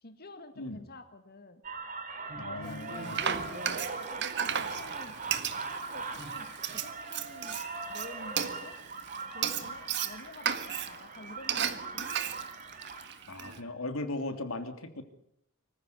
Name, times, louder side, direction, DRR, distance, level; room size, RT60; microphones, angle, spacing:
voice 1, 0.0-1.6 2.5-3.5 4.0-5.2 5.5-7.6 7.9-8.8 9.3-12.2, left 2 dB, 50° left, 7 dB, 1.9 m, -50 dB
sound 1, 1.6-13.6, right 3 dB, 40° right, 4.4 m, -40 dB
voice 2, 2.4-3.2 3.4-3.7 13.3-15.0, left 2 dB, 85° left, 7 dB, 2.9 m, -38 dB
Frying (food), 2.7-13.6, right 8 dB, 60° right, 1.6 m, -35 dB
25.0 x 15.0 x 9.6 m, 0.75 s
head